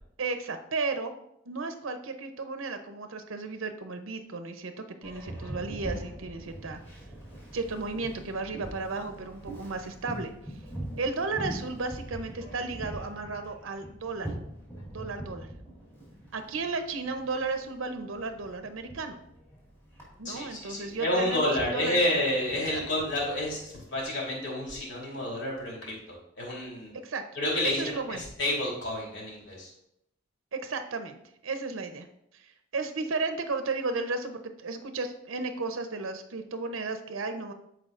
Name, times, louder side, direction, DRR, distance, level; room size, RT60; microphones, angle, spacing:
voice 1, 0.2-1.1 1.5-6.8 7.5-10.3 11.0-14.3 14.9-15.5 16.3-19.2 20.2-22.0 22.7-22.8 26.9-27.2 27.6-28.2 30.5-31.2 31.4-32.1 32.3-37.5, right 3 dB, 90° right, 7 dB, 0.7 m, -34 dB
Boat Water vehicle, 5.0-24.0, right 1 dB, 10° left, 2.7 m, -43 dB
voice 2, 20.2-26.9 27.3-29.7, left 1 dB, 65° left, -4 dB, 3.1 m, -30 dB
14.0 x 4.7 x 2.5 m, 0.78 s
head